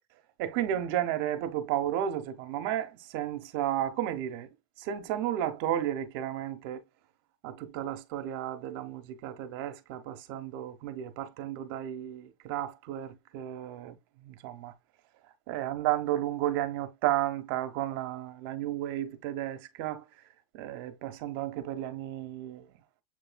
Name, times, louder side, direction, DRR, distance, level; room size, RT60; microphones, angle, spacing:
voice 1, 0.4-6.8 7.4-14.7 15.5-20.0 20.5-22.7, right 12 dB, 60° right, 1.0 m, -33 dB
7.6 x 3.1 x 2.2 m
supercardioid pair, 135°, 13 cm